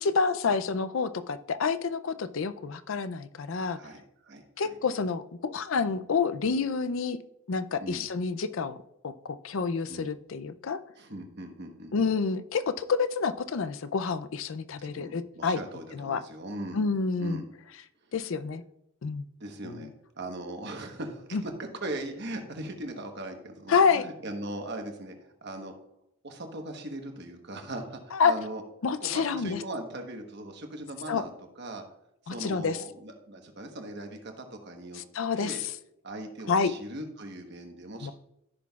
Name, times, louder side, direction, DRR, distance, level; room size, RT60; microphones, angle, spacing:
voice 1, 0.0-3.8 4.6-7.2 7.5-8.8 9.0-10.8 11.9-15.6 15.9-16.2 16.7-17.4 18.1-18.6 19.0-19.2 19.6-19.9 21.3-21.4 23.7-24.0 28.1-28.3 28.8-29.6 31.1-31.2 32.3-32.8 34.9-35.7 36.5-36.7 38.0-38.1, left 5 dB, 65° left, 12 dB, 0.4 m, -28 dB
voice 2, 3.7-4.8 7.8-8.0 9.9-10.1 11.0-11.9 14.8-16.8 17.2-17.4 19.4-19.9 20.2-21.5 21.8-25.7 26.2-28.6 29.0-31.8 32.2-35.0 35.4-35.6 36.0-38.1, right 1 dB, 50° right, 4 dB, 1.2 m, -39 dB
14.5 x 6.1 x 2.4 m, 0.80 s
head